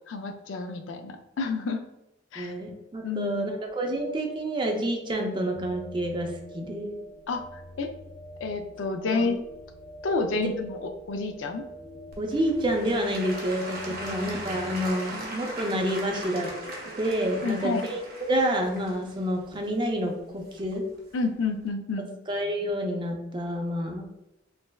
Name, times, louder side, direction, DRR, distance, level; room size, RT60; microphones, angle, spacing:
voice 1, 0.1-1.8 2.3-2.6 3.0-3.6 7.3-7.9 8.4-9.4 10.0-11.6 13.9-14.2 17.4-17.8 21.1-22.1, left 3 dB, 70° left, 6 dB, 0.4 m, -30 dB
voice 2, 2.4-7.0 9.1-9.3 10.4-10.5 12.2-16.5 16.9-18.0 18.3-20.8 22.3-24.1, equal, 25° right, 2 dB, 0.4 m, -28 dB
sound 1, 5.5-14.9, equal, 10° left, 0.8 m, -45 dB
Applause / Crowd, 12.1-21.0 21.6-21.7, right 1 dB, 50° right, 0.8 m, -39 dB
3.3 x 3.1 x 2.2 m, 0.89 s
head